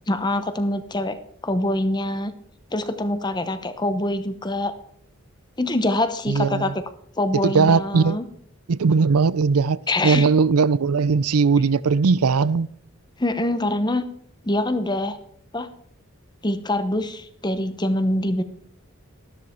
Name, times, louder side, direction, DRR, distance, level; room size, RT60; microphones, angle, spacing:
voice 1, 0.1-1.2 1.4-2.3 2.7-4.7 5.6-6.8 7.2-8.2 9.9-10.3 13.2-14.0 14.4-15.2 15.5-15.7 16.4-18.4, left 1 dB, 20° left, 0.9 m, -24 dB
voice 2, 6.3-6.6 7.4-8.2 8.7-9.8 10.0-12.7, right 5 dB, 85° right, 0.5 m, -19 dB
13.0 x 12.5 x 4.5 m
head